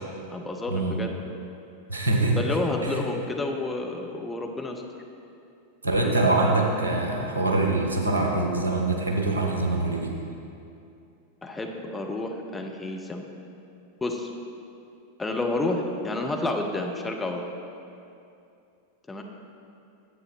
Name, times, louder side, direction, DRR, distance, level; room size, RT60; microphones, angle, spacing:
voice 1, 0.3-1.1 2.4-4.8 11.4-13.3 14.0-14.3 15.2-17.4 19.1-19.2, left 2 dB, 10° left, 2 dB, 0.8 m, -30 dB
voice 2, 1.9-2.4 2.8-3.0 5.8-10.2, right 2 dB, 75° right, 0 dB, 1.2 m, -24 dB
9.8 x 7.9 x 4.0 m, 2.6 s
figure-of-eight pair, 90°, 0 cm